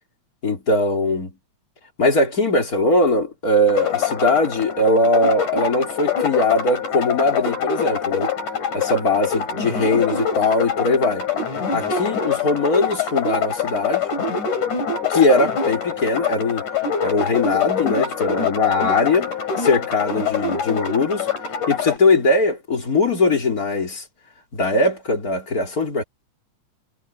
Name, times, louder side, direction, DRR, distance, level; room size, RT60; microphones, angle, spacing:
voice 1, 0.4-1.4 2.0-8.3 8.7-11.3 11.7-14.1 15.1-16.6 17.0-21.3 21.7-24.0 24.5-26.0, left 2 dB, 30° left, 3.6 m, -20 dB
sound 1, 3.7-22.0, left 6 dB, 90° left, 5.6 m, -24 dB
omnidirectional pair, 3.4 m